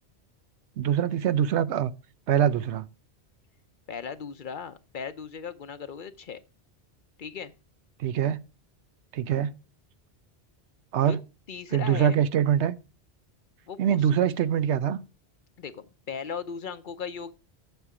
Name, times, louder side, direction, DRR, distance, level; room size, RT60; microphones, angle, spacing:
voice 1, 0.8-1.9 2.3-2.9 8.0-8.4 9.1-9.5 10.9-11.2 11.7-12.7 13.8-15.0, right 9 dB, 90° right, 0.9 m, -24 dB
voice 2, 3.9-6.4 7.2-7.5 11.1-11.2 11.5-12.2 13.7-14.1 15.6-17.3, left 6 dB, 55° left, 0.8 m, -37 dB
8.1 x 7.2 x 4.8 m
omnidirectional pair, 1.1 m